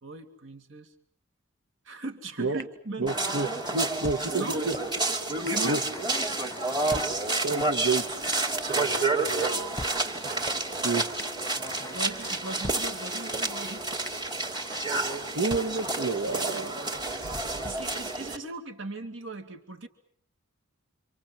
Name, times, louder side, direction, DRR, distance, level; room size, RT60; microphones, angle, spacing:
voice 1, 0.0-0.9 1.8-3.1 4.3-4.6 5.4-5.8 9.3-9.6 11.9-13.9 17.2-19.9, right 2 dB, 65° right, 6 dB, 2.4 m, -39 dB
sound 1, 2.6-2.7 3.1-4.2 4.7-4.8 5.5-5.6 5.9-7.1 7.6-7.7 8.3-8.4 8.8-9.9 10.5-10.6 11.2-11.3 11.7-12.8 13.3-13.4 14.1-14.2 14.5-15.6, left 1 dB, 15° left, 1.0 m, -41 dB
voice 2, 3.0-4.7 5.6-5.8 7.4-8.0 10.8-11.0 15.3-16.7, right 3 dB, 80° right, 4 dB, 1.7 m, -29 dB
sound 2, 3.1-18.4, right 2 dB, 20° right, 2.9 m, -30 dB
27.0 x 27.0 x 7.4 m, 0.63 s
head